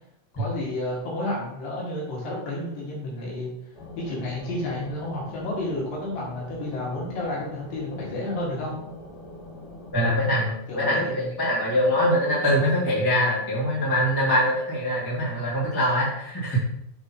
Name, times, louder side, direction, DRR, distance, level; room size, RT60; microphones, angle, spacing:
voice 1, 0.3-3.5 4.0-8.8 10.7-11.3 15.4-15.5, left 1 dB, 80° left, -4 dB, 3.7 m, -31 dB
sound 1, 3.7-9.9, left 2 dB, 60° left, 3.5 m, -43 dB
voice 2, 9.9-16.6, equal, 10° left, -6 dB, 1.0 m, -23 dB
7.0 x 5.5 x 3.0 m, 0.79 s
omnidirectional pair, 3.9 m